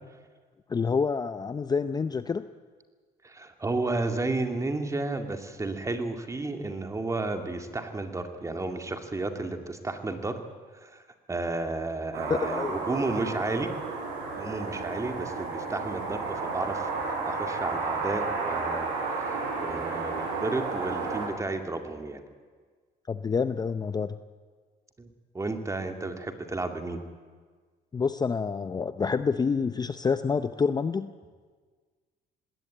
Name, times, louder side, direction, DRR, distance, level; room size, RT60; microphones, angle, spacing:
voice 1, 0.7-2.5 12.3-12.8 23.1-24.2 27.9-31.1, left 5 dB, 25° left, 11 dB, 0.6 m, -27 dB
voice 2, 3.2-10.3 10.8-11.0 11.3-13.7 14.3-18.9 19.2-22.2 25.0-25.1 25.3-27.0, right 2 dB, 20° right, 5 dB, 2.3 m, -32 dB
sound 1, 12.1-21.3, right 4 dB, 90° right, 6.7 m, -32 dB
19.5 x 17.0 x 9.2 m, 1.5 s
cardioid pair, 110°, 17 cm